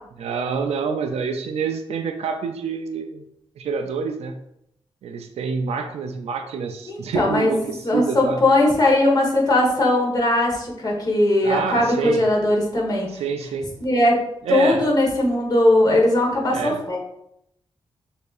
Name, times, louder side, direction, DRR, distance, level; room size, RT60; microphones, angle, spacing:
voice 1, 0.2-3.2 3.6-4.3 5.0-8.4 11.4-12.2 13.1-13.7 14.4-14.8 16.5-16.8, right 5 dB, 85° right, 5 dB, 0.4 m, -27 dB
voice 2, 6.9-13.1 13.8-14.2 14.5-17.0, left 1 dB, 40° left, -2 dB, 1.3 m, -19 dB
6.5 x 2.7 x 2.5 m, 0.77 s
cardioid pair, 95°, 10 cm